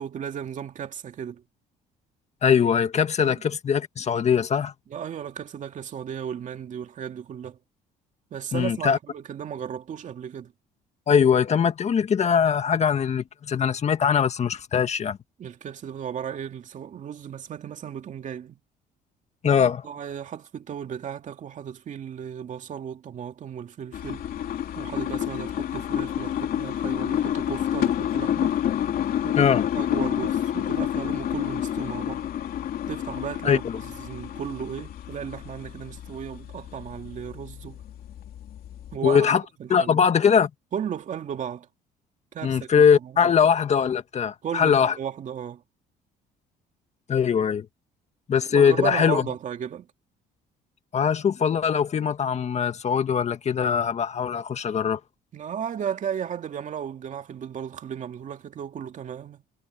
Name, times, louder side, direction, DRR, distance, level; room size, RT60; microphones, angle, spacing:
voice 1, 0.0-1.4 3.2-3.4 4.9-7.6 8.3-10.5 15.4-18.6 19.4-24.3 24.8-28.6 29.2-32.3 32.9-37.8 38.9-39.3 39.6-40.0 40.7-41.7 42.3-43.3 44.4-45.6 48.5-49.9 55.3-59.4, right 8 dB, 50° right, 2.5 m, -35 dB
voice 2, 2.4-4.7 8.5-9.0 11.1-15.2 19.4-19.8 29.3-29.6 33.4-33.8 39.0-39.4 39.7-40.5 42.4-44.9 47.1-47.7 48.3-49.2 50.9-55.0, left 7 dB, 40° left, 1.9 m, -21 dB
sound 1, 23.9-39.0, left 10 dB, 60° left, 3.0 m, -29 dB
cardioid pair, 110°, 17 cm